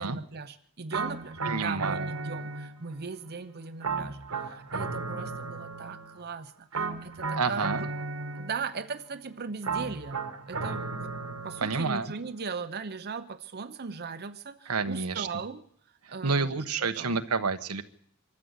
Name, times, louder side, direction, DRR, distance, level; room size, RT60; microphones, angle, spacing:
voice 1, 0.0-7.9 8.4-11.1 11.4-15.6 16.1-17.2, right 5 dB, 45° right, 10 dB, 0.8 m, -38 dB
sound 1, 0.9-3.0 3.8-6.2 6.7-8.8 9.6-12.0, right 4 dB, 70° right, 1.7 m, -35 dB
voice 2, 1.4-2.1 7.3-7.8 11.6-12.1 14.7-15.3 16.2-17.8, right 4 dB, 85° right, 9 dB, 1.3 m, -29 dB
24.5 x 13.5 x 8.2 m, 0.65 s
head